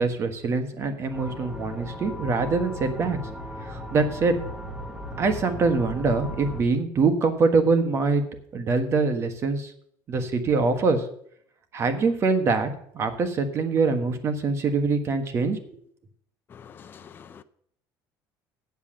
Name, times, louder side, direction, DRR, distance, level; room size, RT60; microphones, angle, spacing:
voice 1, 0.0-3.2 3.6-4.4 5.2-8.2 8.5-9.7 10.1-11.0 11.7-12.7 12.9-15.6, right 4 dB, 35° right, 1.4 m, -24 dB
sound 1, 1.1-6.6, left 1 dB, 10° right, 1.6 m, -37 dB
voice 2, 16.5-17.4, left 7 dB, 25° left, 0.5 m, -46 dB
8.2 x 7.2 x 8.7 m
cardioid pair, 145°, 8 cm